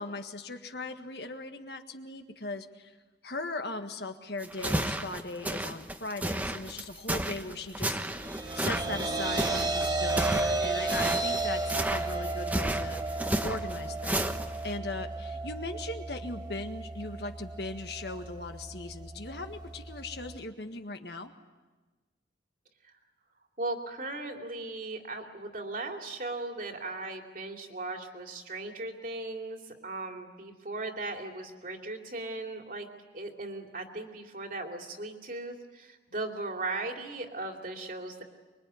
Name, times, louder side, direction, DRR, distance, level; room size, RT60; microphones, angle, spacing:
voice 1, 0.0-2.9 3.2-8.0 8.5-11.6 11.9-14.2 14.6-21.3, left 2 dB, 60° left, 6 dB, 1.7 m, -39 dB
sound 1, 4.4-14.7, right 1 dB, 10° right, 1.1 m, -32 dB
sound 2, 8.0-20.4, right 3 dB, 25° right, 2.4 m, -33 dB
voice 2, 23.6-32.9 33.1-38.2, right 2 dB, 50° right, 3 dB, 2.8 m, -37 dB
25.0 x 23.0 x 9.5 m, 1.3 s
head